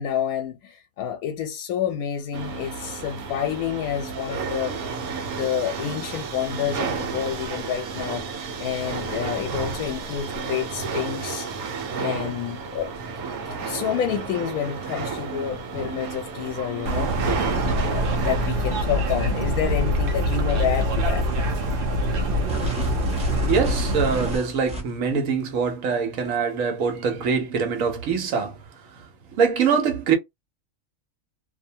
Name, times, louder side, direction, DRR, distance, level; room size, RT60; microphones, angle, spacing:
voice 1, 0.0-4.8 5.4-8.2 8.6-11.5 12.0-12.9 13.5-17.2 17.6-21.2, left 9 dB, 90° left, 1.0 m, -29 dB
sound 1, 2.3-18.5, right 5 dB, 90° right, 1.2 m, -32 dB
sound 2, 16.9-24.4, equal, 55° right, 0.7 m, -24 dB
sound 3, 22.5-25.1, right 2 dB, 5° right, 0.7 m, -33 dB
voice 2, 23.5-28.6 29.4-30.1, right 6 dB, 70° right, 1.2 m, -23 dB
2.7 x 2.1 x 2.7 m
omnidirectional pair, 1.5 m